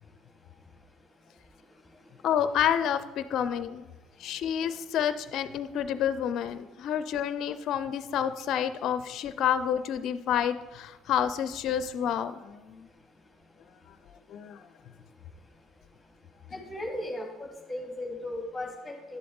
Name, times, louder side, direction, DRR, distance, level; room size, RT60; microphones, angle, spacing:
voice 1, 2.2-3.9 4.2-12.9 13.9-14.0 14.3-14.7, left 9 dB, 60° left, 12 dB, 0.4 m, -29 dB
voice 2, 16.5-17.3 17.7-19.2, left 1 dB, 10° left, 1 dB, 1.5 m, -36 dB
11.0 x 7.6 x 3.9 m, 1.2 s
hypercardioid pair, 65°, 0 cm